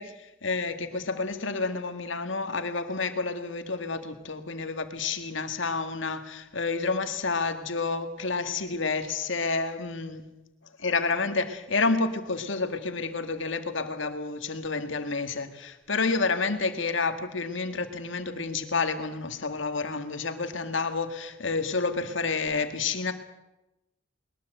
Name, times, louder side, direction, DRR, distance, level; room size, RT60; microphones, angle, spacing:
voice 1, 0.0-10.2 10.8-23.1, left 4 dB, 65° left, 8 dB, 1.9 m, -29 dB
21.0 x 20.5 x 7.8 m, 0.96 s
head